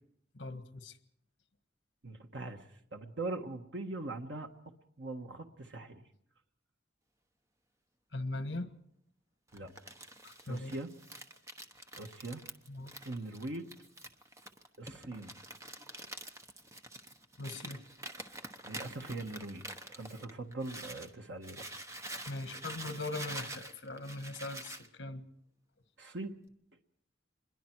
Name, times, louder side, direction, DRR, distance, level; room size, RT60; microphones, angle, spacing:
voice 1, 0.3-1.0 8.1-8.7 10.2-10.7 12.7-12.9 17.4-17.8 22.3-25.2, left 2 dB, 70° left, 9 dB, 1.5 m, -40 dB
voice 2, 2.0-4.5 5.0-6.0 9.5-9.7 10.5-10.9 12.0-12.4 13.0-13.7 14.8-15.4 18.6-21.6 26.0-26.3, right 2 dB, 75° right, 4 dB, 1.4 m, -41 dB
Crumpling crinkling, 9.5-21.1 21.4-24.9, right 1 dB, 15° right, 1.0 m, -47 dB
25.5 x 22.0 x 4.6 m, 0.73 s
head